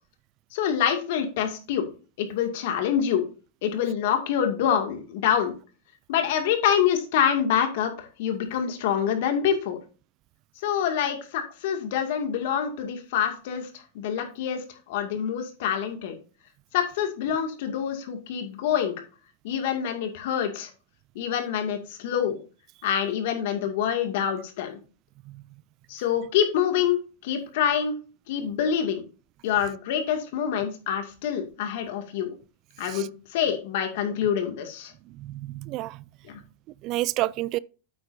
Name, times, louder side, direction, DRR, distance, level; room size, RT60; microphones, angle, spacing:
voice 1, 0.5-1.9 2.2-3.3 3.6-5.5 6.1-9.8 10.6-13.7 13.9-16.1 16.7-18.9 19.4-20.7 21.2-22.4 22.8-24.8 25.9-27.9 28.3-29.0 29.4-32.3 32.8-34.9 36.3-36.4, left 8 dB, 65° left, 2.2 m, -26 dB
voice 2, 35.2-36.0 36.8-37.6, right 17 dB, 45° right, 0.3 m, -29 dB
8.6 x 8.6 x 2.7 m
hypercardioid pair, 115°, 0 cm